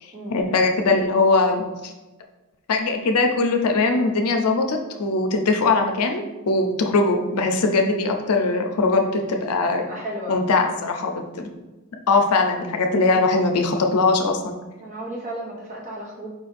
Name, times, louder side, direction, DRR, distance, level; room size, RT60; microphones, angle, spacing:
voice 1, 0.3-1.9 2.7-9.8 10.3-11.5 12.1-14.5, left 3 dB, 85° left, 4 dB, 0.5 m, -21 dB
voice 2, 9.8-10.4 13.0-13.2 14.8-16.3, right 1 dB, 35° right, -3 dB, 1.1 m, -34 dB
4.8 x 2.5 x 4.1 m, 1.1 s
head